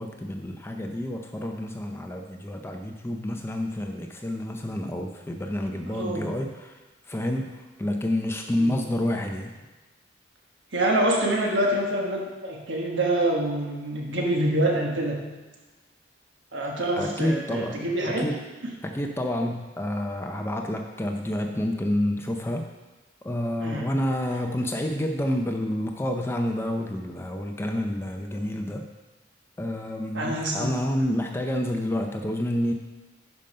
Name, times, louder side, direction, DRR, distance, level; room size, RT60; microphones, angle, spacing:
voice 1, 0.0-6.8 7.1-9.5 17.0-18.4 18.8-22.7 23.2-28.9 29.6-32.7, left 1 dB, 15° left, 3 dB, 0.5 m, -29 dB
voice 2, 5.9-6.3 8.6-8.8 10.7-15.2 16.5-18.2 23.6-23.8 30.1-30.7, right 1 dB, 75° right, -1 dB, 1.4 m, -26 dB
11.0 x 5.2 x 5.4 m, 1.2 s
head